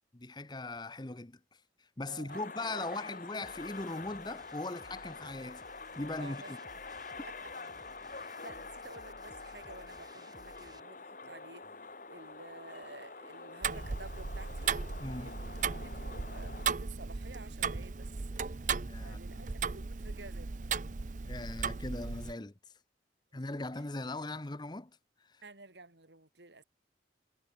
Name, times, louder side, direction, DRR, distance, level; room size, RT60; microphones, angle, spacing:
voice 1, 0.1-1.4 2.0-5.6 6.0-6.6 15.0-15.3 18.9-19.5 21.2-22.5 23.3-24.9 25.3-25.4, left 2 dB, 25° left, 0.8 m, -39 dB
voice 2, 2.1-2.9 6.2-6.5 7.2-7.3 8.1-11.7 12.1-14.7 15.2-18.3 19.0-20.7 25.4-26.6, right 3 dB, 70° right, 3.7 m, -52 dB
sound 1, 2.3-16.7, left 4 dB, 45° left, 1.7 m, -47 dB
sound 2, 3.4-10.8, right 2 dB, 20° right, 4.4 m, -59 dB
Tick-tock, 13.6-22.3, right 5 dB, 40° right, 0.6 m, -36 dB
head